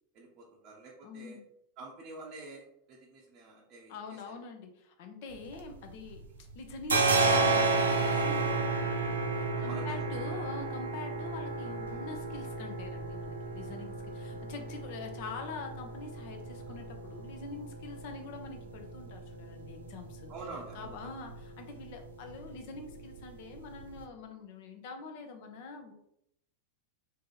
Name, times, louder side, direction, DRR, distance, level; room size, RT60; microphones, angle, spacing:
voice 1, 0.1-1.4 1.8-4.0 9.5-10.0 20.3-21.0, right 3 dB, 40° right, -3 dB, 0.7 m, -47 dB
voice 2, 1.0-1.4 3.9-20.3 20.7-25.9, left 4 dB, 50° left, 4 dB, 0.7 m, -45 dB
sound 1, 5.3-6.2 6.5-24.0, right 3 dB, 70° right, 0.6 m, -33 dB
3.8 x 2.9 x 3.8 m, 0.76 s
figure-of-eight pair, 90°, 0 cm